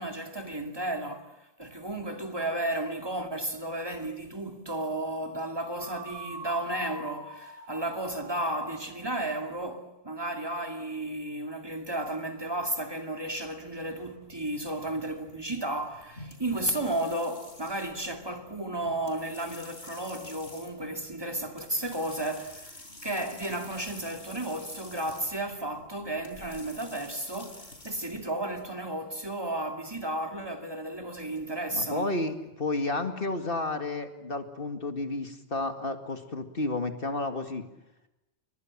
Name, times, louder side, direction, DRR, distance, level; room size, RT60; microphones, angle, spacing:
voice 1, 0.0-1.3 1.6-22.8 23.0-32.1, right 1 dB, 25° right, 2.4 m, -33 dB
sound 1, 5.8-9.7, right 3 dB, 75° right, 3.1 m, -44 dB
sound 2, 13.3-28.2, left 1 dB, 85° left, 5.3 m, -49 dB
voice 2, 31.7-37.6, left 2 dB, 60° left, 2.4 m, -31 dB
29.5 x 23.5 x 7.5 m
omnidirectional pair, 1.0 m